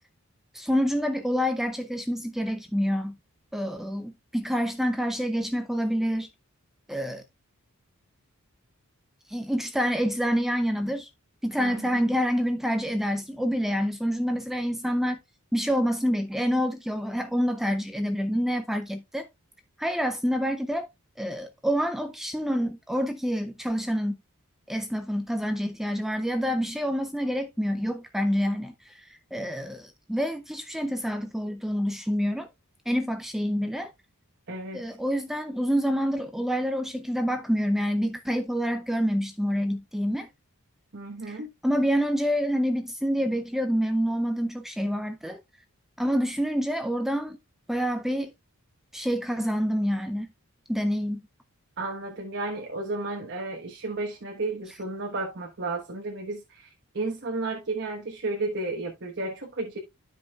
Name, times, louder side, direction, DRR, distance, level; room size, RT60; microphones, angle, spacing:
voice 1, 0.5-3.2 3.5-6.3 6.9-7.2 9.3-11.1 11.4-15.2 15.5-19.3 19.8-20.9 21.2-24.2 24.7-32.5 32.9-33.9 34.7-40.3 41.3-41.4 41.6-45.4 46.0-47.4 47.7-48.3 48.9-50.3 50.7-51.2, equal, ahead, 0.5 m, -27 dB
voice 2, 11.6-12.0 34.5-34.8 40.9-41.5 51.8-59.8, right 2 dB, 55° right, 1.2 m, -33 dB
12.5 x 5.1 x 2.3 m
head